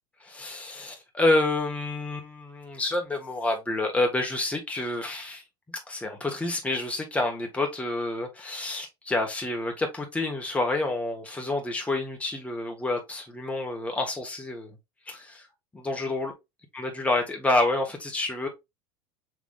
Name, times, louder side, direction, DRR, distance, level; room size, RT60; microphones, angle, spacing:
voice 1, 0.2-5.4 5.7-14.8 15.1-15.5 15.7-16.3 16.7-18.5, left 2 dB, 10° left, 1.3 m, -28 dB
5.9 x 3.4 x 2.3 m
hypercardioid pair, 85°, 13 cm